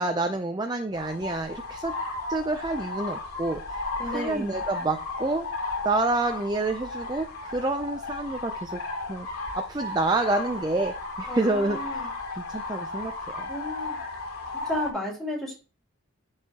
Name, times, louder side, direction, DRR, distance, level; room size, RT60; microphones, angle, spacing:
voice 1, 0.0-2.0 2.3-3.8 4.1-5.5 5.8-8.8 9.1-9.3 9.5-13.5, right 2 dB, 20° right, 6 dB, 0.4 m, -28 dB
sound 1, 0.9-14.9, left 3 dB, 90° left, 2.7 m, -35 dB
voice 2, 4.0-4.6 11.3-12.1 13.5-14.0 14.5-15.5, left 1 dB, ahead, -2 dB, 2.9 m, -33 dB
13.5 x 4.7 x 2.9 m, 0.34 s
head